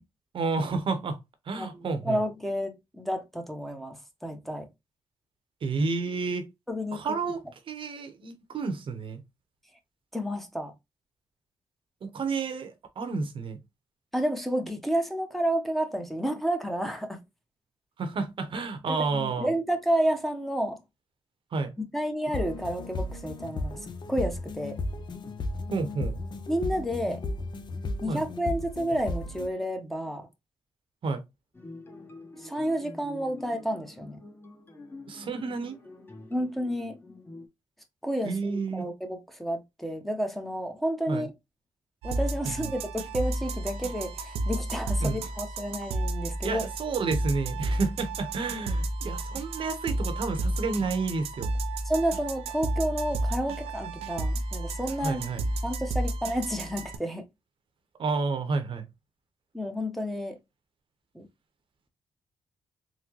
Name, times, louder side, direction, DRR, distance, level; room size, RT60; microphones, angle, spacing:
voice 1, 0.3-1.2 1.5-2.2 5.6-6.5 6.9-7.4 7.7-9.2 12.0-13.6 18.0-19.5 21.5-21.7 25.7-26.2 28.1-28.2 31.0-31.2 35.1-35.8 38.2-38.9 41.1-41.3 42.4-42.7 45.0-45.2 46.4-51.5 55.0-55.4 58.0-58.9, right 4 dB, 60° right, 0.9 m, -30 dB
voice 2, 1.6-4.7 6.7-7.2 10.1-10.7 14.1-17.2 18.9-20.8 21.8-24.8 26.5-27.2 28.0-30.3 32.4-34.2 36.3-37.0 38.0-41.3 42.0-46.6 51.8-55.2 55.6-57.2 59.5-60.4 61.1-61.3, equal, ahead, 0.9 m, -30 dB
sound 1, 22.3-29.5, left 2 dB, 50° left, 0.7 m, -35 dB
sound 2, 31.5-37.5, left 2 dB, 20° left, 1.2 m, -46 dB
sound 3, 42.0-57.0, right 2 dB, 90° right, 0.5 m, -32 dB
3.8 x 2.1 x 3.0 m
cardioid pair, 65°, 10 cm